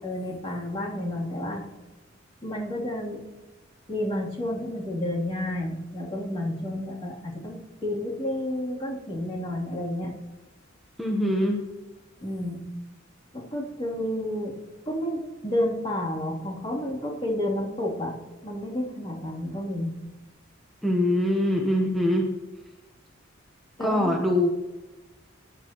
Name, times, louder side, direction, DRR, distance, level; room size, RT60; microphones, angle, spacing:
voice 1, 0.0-1.6 2.4-3.2 3.9-10.1 12.2-12.6 13.3-14.6 14.9-18.1 18.4-19.9 23.8-24.1, left 1 dB, 25° left, -5 dB, 3.0 m, -30 dB
voice 2, 11.0-11.6 20.8-22.3 23.8-24.5, left 1 dB, ahead, -1 dB, 1.0 m, -23 dB
23.0 x 10.0 x 3.0 m, 1.2 s
head